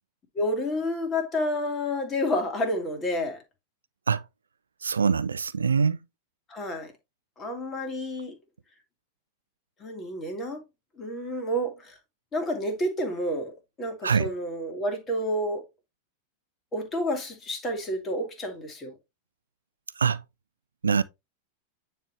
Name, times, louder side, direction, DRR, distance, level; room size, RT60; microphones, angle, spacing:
voice 1, 0.4-3.4 6.5-6.9 7.4-8.3 9.8-10.6 11.0-11.9 12.3-15.7 16.7-18.9, left 1 dB, 25° left, 2.1 m, -30 dB
voice 2, 4.8-6.0 14.0-14.3 20.0-20.2 20.8-21.0, right 6 dB, 75° right, 0.3 m, -23 dB
9.4 x 3.4 x 3.1 m
figure-of-eight pair, 90°, 0 cm